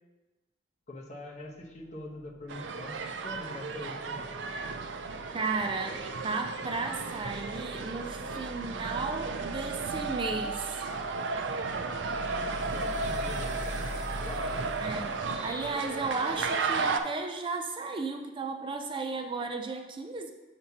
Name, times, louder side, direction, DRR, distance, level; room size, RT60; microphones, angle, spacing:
voice 1, 0.9-3.0 3.2-4.3 11.7-12.0 12.6-13.8 14.2-14.8, left 1 dB, 40° left, -1 dB, 1.0 m, -43 dB
sound 1, 1.6-15.7, equal, 50° right, 1.1 m, -44 dB
sound 2, 2.5-17.0, right 4 dB, 90° right, 0.5 m, -34 dB
voice 2, 5.3-10.8 14.8-20.3, right 3 dB, 30° right, 5 dB, 0.4 m, -34 dB
7.6 x 5.9 x 2.8 m, 1.1 s
head